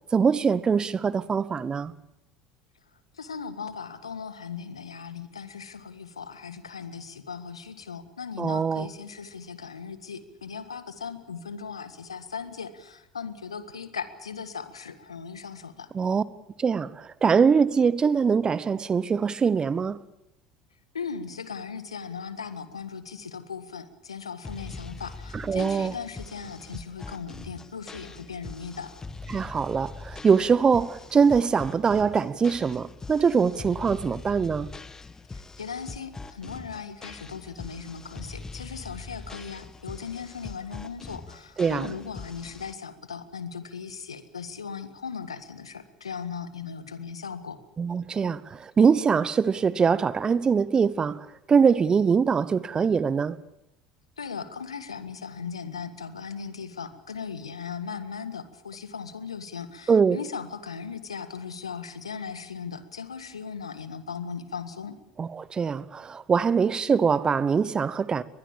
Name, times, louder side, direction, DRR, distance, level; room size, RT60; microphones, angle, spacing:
voice 1, 0.1-1.9 8.4-8.9 15.9-16.2 16.6-20.0 25.3-25.9 29.3-34.7 41.6-41.9 47.8-53.4 59.9-60.2 65.2-68.2, right 6 dB, 30° right, 1.1 m, -23 dB
voice 2, 3.1-15.9 20.9-28.9 35.3-47.6 54.2-65.0, left 6 dB, 85° left, 1.7 m, -38 dB
sound 1, 24.4-42.7, left 3 dB, 20° left, 1.7 m, -42 dB
23.0 x 21.0 x 7.3 m
figure-of-eight pair, 65°, 3 cm